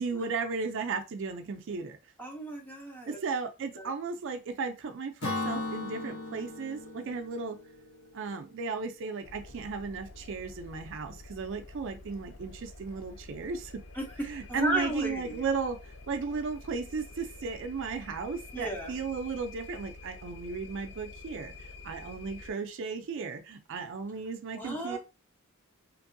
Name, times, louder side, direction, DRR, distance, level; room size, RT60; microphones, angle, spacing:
voice 1, 0.0-2.0 3.1-7.6 8.1-13.8 14.2-25.0, right 4 dB, 55° right, 6 dB, 0.4 m, -35 dB
voice 2, 2.2-3.2 3.8-3.9 13.9-14.1 14.5-15.4 18.5-18.9 24.5-25.0, right 1 dB, 10° left, 1 dB, 0.6 m, -34 dB
Acoustic guitar / Strum, 5.2-8.8, left 2 dB, 75° left, 1.0 m, -37 dB
sound 1, 9.2-22.5, left 3 dB, 60° left, 0.5 m, -48 dB
2.9 x 2.6 x 2.6 m, 0.28 s
head